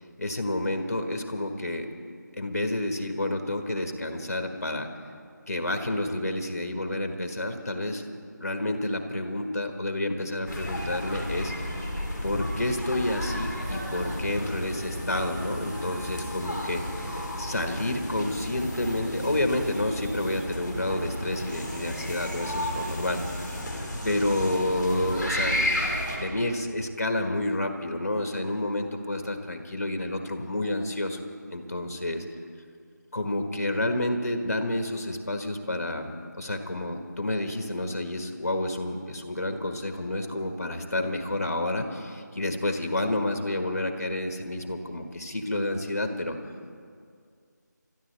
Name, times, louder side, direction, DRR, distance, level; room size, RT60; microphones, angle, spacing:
voice 1, 0.2-1.9 2.4-4.9 5.5-8.1 8.4-11.7 12.2-23.5 24.0-25.7 26.2-31.2 31.5-32.3 33.1-36.1 36.3-46.4, left 1 dB, 50° left, 5 dB, 1.6 m, -29 dB
sound 1, 10.5-26.2, left 1 dB, 5° right, 1.8 m, -33 dB
sound 2, 13.6-20.5 20.9-23.6, right 1 dB, 70° right, 4.7 m, -50 dB
28.5 x 13.5 x 3.4 m, 2.2 s
figure-of-eight pair, 180°, 10 cm